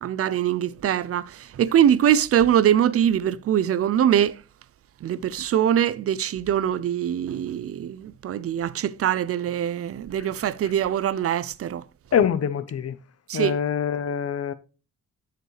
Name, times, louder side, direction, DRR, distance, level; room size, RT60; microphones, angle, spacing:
voice 1, 0.0-4.4 5.0-11.8 13.3-13.5, right 10 dB, 45° right, 0.4 m, -23 dB
voice 2, 12.1-12.9 13.3-14.5, left 8 dB, 50° left, 0.7 m, -24 dB
9.1 x 6.9 x 3.2 m
wide cardioid pair, 150°, 32 cm